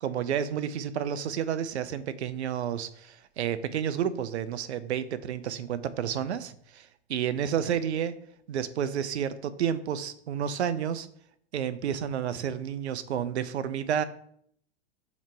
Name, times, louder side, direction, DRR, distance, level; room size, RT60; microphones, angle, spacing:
voice 1, 0.0-8.1 8.5-11.1 11.5-14.0, right 9 dB, 85° right, 14 dB, 0.6 m, -30 dB
7.2 x 3.1 x 4.6 m, 0.66 s
hypercardioid pair, 120°, 33 cm